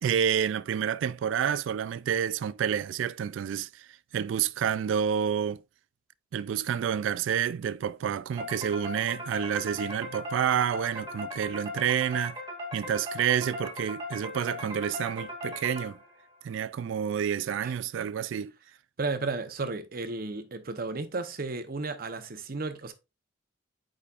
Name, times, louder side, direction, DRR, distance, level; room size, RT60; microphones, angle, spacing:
voice 1, 0.0-5.6 6.3-12.4 12.7-16.0 16.4-18.5, right 8 dB, 75° right, 0.3 m, -29 dB
sound 1, 8.4-16.2, left 1 dB, 20° right, 1.8 m, -39 dB
voice 2, 19.0-22.9, right 3 dB, 50° right, 0.8 m, -33 dB
8.4 x 4.9 x 2.4 m
head